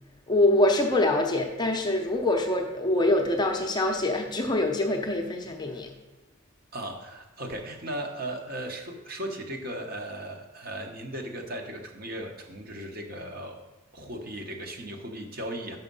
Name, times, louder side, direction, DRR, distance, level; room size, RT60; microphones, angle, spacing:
voice 1, 0.3-5.9, left 1 dB, 20° left, 2 dB, 0.6 m, -24 dB
voice 2, 6.7-13.6 13.9-15.8, right 1 dB, 45° right, 2 dB, 1.0 m, -37 dB
6.2 x 5.7 x 5.4 m, 1.1 s
head